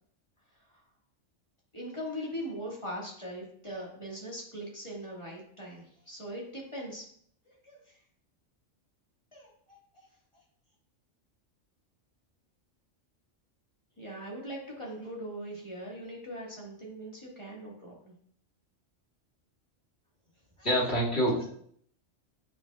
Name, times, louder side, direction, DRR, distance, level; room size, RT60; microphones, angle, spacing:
voice 1, 1.7-7.0 7.4-7.8 9.3-10.1 14.0-18.1 20.6-20.9, equal, 25° left, -4 dB, 1.9 m, -41 dB
voice 2, 20.6-21.4, equal, 55° left, -5 dB, 2.7 m, -26 dB
8.5 x 6.1 x 2.4 m, 0.63 s
omnidirectional pair, 1.3 m